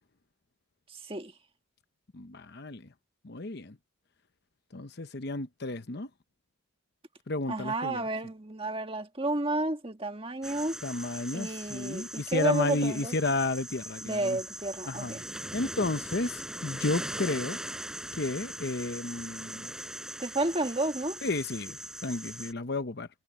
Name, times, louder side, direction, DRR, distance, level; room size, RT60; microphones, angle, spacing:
voice 1, 0.9-1.3 7.5-10.8 11.3-13.1 14.0-15.2 20.2-21.2, right 2 dB, 25° right, 1.6 m, -31 dB
voice 2, 2.1-2.9 3.2-3.8 4.7-6.1 7.3-8.1 10.8-14.4 14.9-15.2 15.5-17.6 18.1-19.7 21.2-23.1, left 2 dB, 50° left, 0.9 m, -32 dB
sound 1, 10.4-22.5, right 1 dB, 5° right, 4.9 m, -41 dB
head